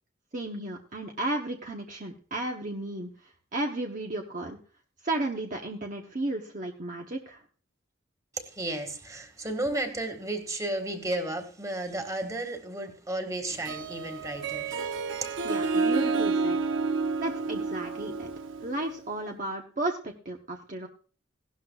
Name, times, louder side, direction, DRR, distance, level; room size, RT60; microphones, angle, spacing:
voice 1, 0.3-4.6 5.0-7.4 15.4-16.6 17.2-18.3 18.6-20.9, right 2 dB, 45° right, 2 dB, 1.0 m, -33 dB
voice 2, 8.4-14.8, right 1 dB, 20° right, 6 dB, 1.9 m, -33 dB
Harp, 13.5-19.1, right 4 dB, 85° right, 0.8 m, -30 dB
17.0 x 12.5 x 2.4 m, 0.40 s
head